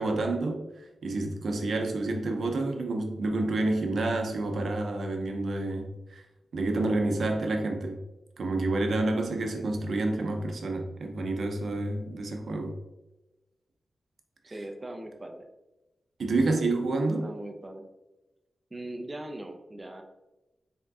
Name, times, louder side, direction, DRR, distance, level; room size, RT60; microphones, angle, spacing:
voice 1, 0.0-6.2 6.5-8.0 8.4-12.7 16.2-17.3, right 2 dB, 75° right, 3 dB, 0.7 m, -29 dB
voice 2, 14.4-15.5 17.2-17.9 18.7-20.0, right 1 dB, 25° right, 5 dB, 0.6 m, -40 dB
4.4 x 3.7 x 2.7 m, 1.0 s
cardioid pair, 80°, 0 cm